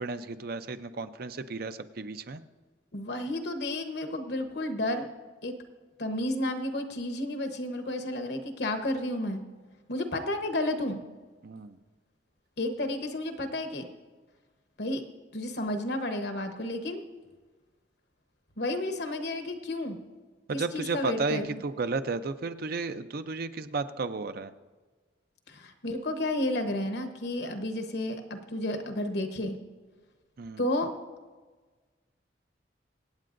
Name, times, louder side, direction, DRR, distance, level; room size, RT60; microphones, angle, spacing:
voice 1, 0.0-2.4 11.4-11.8 20.5-24.5 30.4-30.6, right 4 dB, 55° right, 10 dB, 0.5 m, -33 dB
voice 2, 2.9-5.1 5.4-5.5 6.0-9.4 9.9-11.0 12.6-13.9 14.8-15.0 15.3-17.0 18.6-20.0 20.5-21.6 25.5-29.6 30.6-30.9, left 1 dB, 65° left, 7 dB, 1.1 m, -31 dB
25.0 x 8.6 x 2.6 m, 1.3 s
head